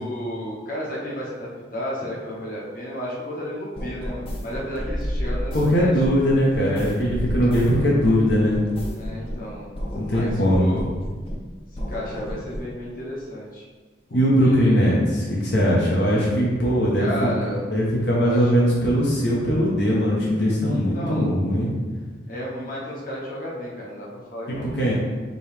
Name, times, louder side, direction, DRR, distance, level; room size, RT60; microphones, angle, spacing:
voice 1, 0.0-5.9 6.3-6.5 8.9-9.7 10.1-10.9 11.7-13.6 14.1-14.9 17.0-17.7 18.2-18.5 20.7-21.3 22.3-24.9, equal, 50° left, -5 dB, 1.0 m, -33 dB
sound 1, 3.7-9.5 9.7-11.5 11.7-12.7, equal, 30° left, 0.5 m, -31 dB
voice 2, 5.5-8.6 9.9-10.7 14.1-17.1 17.7-21.7 24.5-24.9, equal, 70° left, -5 dB, 0.8 m, -20 dB
5.1 x 2.9 x 3.3 m, 1.4 s
head